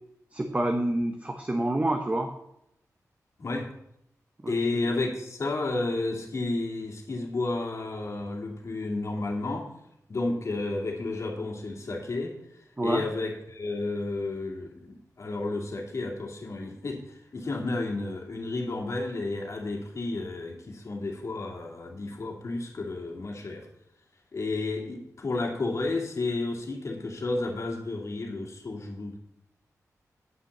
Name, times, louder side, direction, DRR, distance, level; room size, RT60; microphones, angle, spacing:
voice 1, 0.3-2.3 4.4-4.5 12.8-13.0, right 1 dB, 20° right, 4 dB, 0.9 m, -27 dB
voice 2, 4.5-9.7 10.1-12.3 12.8-23.7 24.3-29.2, left 2 dB, 55° left, 0 dB, 2.4 m, -32 dB
9.4 x 5.9 x 7.3 m, 0.78 s
wide cardioid pair, 115°, 6 cm